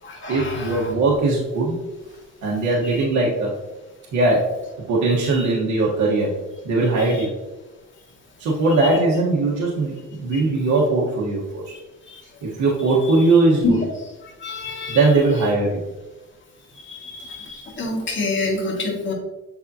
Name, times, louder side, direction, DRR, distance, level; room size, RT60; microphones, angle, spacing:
voice 1, 0.3-1.7 2.4-3.5 4.1-4.5 4.9-6.3 6.6-7.3 8.4-11.7 12.4-13.8 14.9-15.9, right 3 dB, 75° right, -5 dB, 1.3 m, -20 dB
voice 2, 14.4-15.0 16.9-17.4 17.8-19.1, left 3 dB, 40° left, -3 dB, 1.8 m, -25 dB
7.2 x 4.7 x 2.8 m, 1.1 s
cardioid pair, 90°, 30 cm